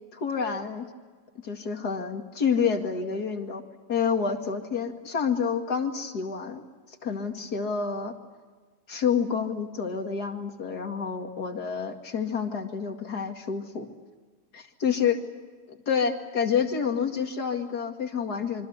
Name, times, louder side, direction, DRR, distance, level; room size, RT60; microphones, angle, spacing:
voice 1, 0.1-0.9 1.4-3.6 3.9-6.6 7.0-8.1 8.9-13.9 14.5-15.2 15.7-18.7, left 6 dB, 80° left, 4 dB, 2.8 m, -28 dB
26.5 x 25.0 x 8.2 m, 1.4 s
omnidirectional pair, 1.7 m